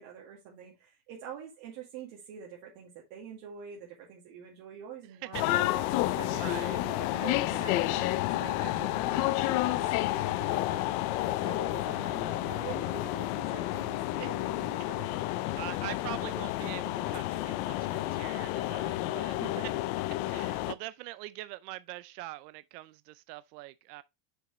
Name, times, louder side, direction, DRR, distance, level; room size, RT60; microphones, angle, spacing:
voice 1, 0.0-15.2 19.4-19.7, right 8 dB, 60° right, 2.2 m, -46 dB
voice 2, 5.1-5.6 6.4-6.8 14.2-14.3 15.5-19.4 20.3-24.0, right 18 dB, 80° right, 0.6 m, -43 dB
sound 1, 5.3-20.7, left 16 dB, 65° left, 0.7 m, -30 dB
sound 2, 14.5-14.8 15.2-16.5 16.8-17.2, left 2 dB, 15° left, 1.9 m, -53 dB
6.4 x 6.3 x 3.1 m
cardioid pair, 165°, 47 cm